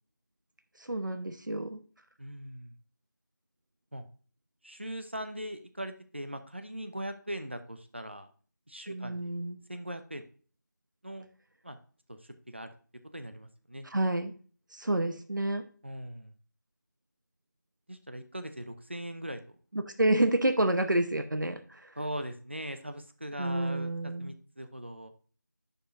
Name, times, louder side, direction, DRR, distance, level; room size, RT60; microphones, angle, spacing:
voice 1, 0.8-1.8 8.9-9.6 13.8-14.3 14.7-15.7 19.7-22.0 23.4-24.4, right 1 dB, 75° right, 8 dB, 0.9 m, -29 dB
voice 2, 2.2-2.7 3.9-4.0 4.6-8.3 8.7-9.3 9.7-10.2 11.0-11.3 11.6-11.8 12.1-12.2 12.5-12.7 13.1-13.9 15.8-16.3 17.9-19.4 22.0-23.9 24.2-25.1, right 1 dB, 35° right, 8 dB, 0.7 m, -40 dB
9.9 x 5.4 x 2.6 m, 0.41 s
figure-of-eight pair, 180°, 10 cm